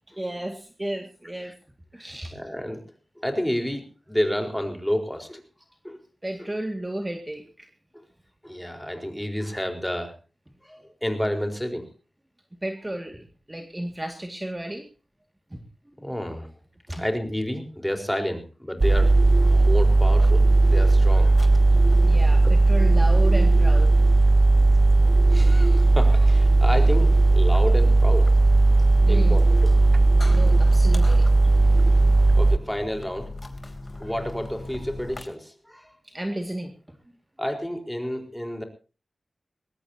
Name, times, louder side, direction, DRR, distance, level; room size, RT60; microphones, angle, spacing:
voice 1, 0.2-1.5 1.9-2.4 6.2-7.7 12.6-14.9 15.5-15.6 16.9-17.0 22.0-24.0 24.5-24.6 29.1-29.4 30.3-31.3 31.5-31.6 36.0-37.0, right 1 dB, 20° right, 4 dB, 2.2 m, -33 dB
voice 2, 2.3-2.8 3.2-5.4 5.8-6.0 6.4-6.5 8.4-10.1 10.6-11.9 16.0-16.5 17.0-21.4 22.4-22.5 25.3-28.3 29.1-29.7 32.4-33.3 34.0-36.0 37.4-38.6, equal, 5° left, 5 dB, 4.5 m, -30 dB
sound 1, 18.8-32.6, right 2 dB, 45° right, 0.6 m, -17 dB
sound 2, 20.0-35.2, left 2 dB, 35° left, 3.4 m, -42 dB
21.5 x 18.5 x 2.9 m, 0.35 s
wide cardioid pair, 70°, 0 cm